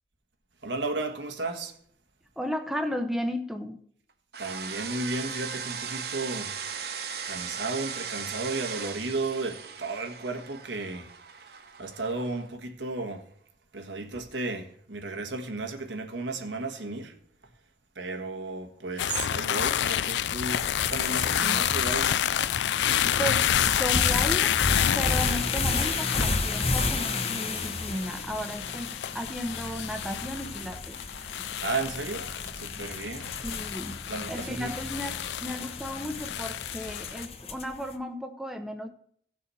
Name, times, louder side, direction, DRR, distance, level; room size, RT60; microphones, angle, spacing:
voice 1, 0.6-1.8 4.4-7.0 7.2-11.1 11.4-13.3 13.7-17.2 17.9-22.2 31.6-33.4 34.1-34.7, right 3 dB, 90° right, 1.5 m, -34 dB
voice 2, 2.4-3.8 23.0-24.6 24.9-31.0 33.4-34.0 34.3-38.9, equal, ahead, 0.7 m, -34 dB
sound 1, 4.3-12.5, right 7 dB, 60° right, 1.1 m, -38 dB
sound 2, 19.0-37.3, left 10 dB, 80° left, 0.4 m, -29 dB
sound 3, 20.5-37.8, left 3 dB, 35° left, 1.0 m, -33 dB
16.5 x 6.3 x 4.2 m
head